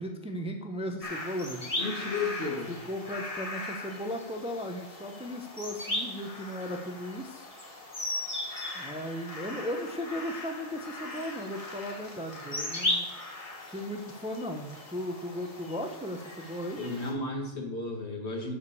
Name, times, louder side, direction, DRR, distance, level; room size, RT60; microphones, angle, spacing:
voice 1, 0.0-1.7 2.8-7.5 8.7-13.1 13.6-16.8, equal, 5° right, 3 dB, 0.9 m, -36 dB
sound 1, 1.0-17.1, left 1 dB, 30° left, 1.8 m, -38 dB
voice 2, 1.8-2.7 16.8-18.5, left 3 dB, 60° left, 1 dB, 2.3 m, -33 dB
12.5 x 5.3 x 6.9 m, 0.91 s
omnidirectional pair, 1.3 m